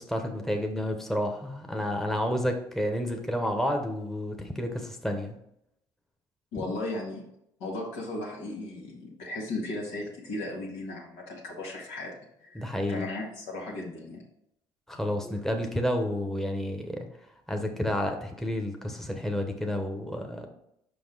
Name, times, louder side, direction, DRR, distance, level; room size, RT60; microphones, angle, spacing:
voice 1, 0.0-5.3 6.6-6.7 12.5-13.0 14.9-17.1 17.5-20.5, equal, 5° left, 3 dB, 1.0 m, -30 dB
voice 2, 6.5-7.2 7.6-12.1 12.4-14.2 14.9-15.3, left 2 dB, 85° left, -2 dB, 2.0 m, -36 dB
5.5 x 5.2 x 3.9 m, 0.77 s
supercardioid pair, 75°, 11 cm